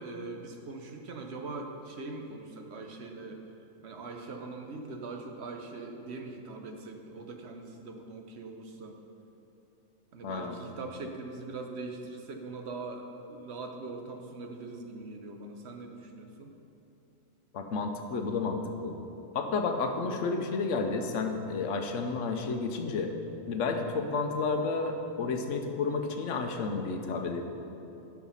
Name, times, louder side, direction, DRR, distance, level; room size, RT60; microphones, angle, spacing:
voice 1, 0.0-3.4 3.8-9.0 10.1-16.5 19.9-20.1, right 3 dB, 60° right, 4 dB, 1.0 m, -42 dB
voice 2, 10.2-10.5 17.5-18.9 19.3-23.1 23.5-27.4, left 4 dB, 70° left, 5 dB, 1.1 m, -31 dB
12.0 x 5.0 x 5.6 m, 2.9 s
omnidirectional pair, 1.4 m